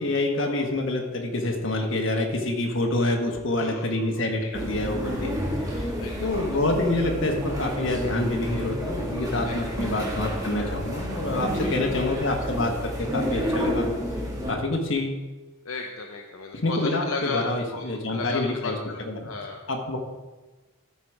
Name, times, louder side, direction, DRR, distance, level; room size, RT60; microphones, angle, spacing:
voice 1, 0.0-5.3 5.7-5.9 6.2-13.9 14.5-15.2 16.5-19.2 19.7-20.0, left 2 dB, 60° left, 1 dB, 1.4 m, -27 dB
voice 2, 3.6-4.9 6.0-6.6 9.4-10.0 10.6-10.7 11.6-12.2 15.6-19.6, left 4 dB, 80° left, 2 dB, 0.7 m, -36 dB
sound 1, 4.5-14.5, equal, 15° right, 1.4 m, -30 dB
13.0 x 5.0 x 4.7 m, 1.2 s
head